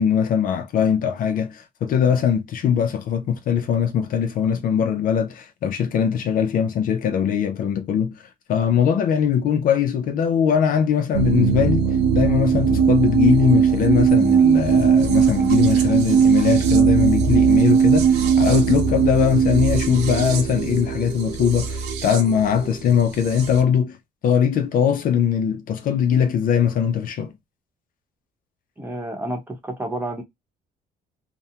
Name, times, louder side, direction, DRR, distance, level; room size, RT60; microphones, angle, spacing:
voice 1, 0.0-8.2 8.5-11.9 12.1-24.0 24.2-27.3, left 8 dB, 55° left, 0.4 m, -21 dB
sound 1, 11.1-23.6, right 7 dB, 90° right, 0.5 m, -19 dB
voice 2, 28.8-30.2, right 1 dB, 10° right, 0.8 m, -30 dB
2.4 x 2.0 x 2.7 m
cardioid pair, 110°, 17 cm